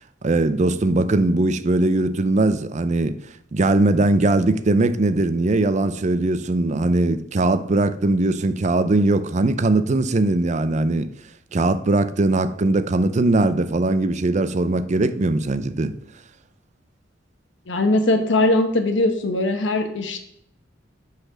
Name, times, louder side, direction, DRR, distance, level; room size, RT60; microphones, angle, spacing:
voice 1, 0.2-3.2 3.5-11.1 11.5-15.9, right 2 dB, 40° right, 0.5 m, -20 dB
voice 2, 17.7-20.2, left 2 dB, 75° left, 1.1 m, -20 dB
7.8 x 4.1 x 6.1 m
head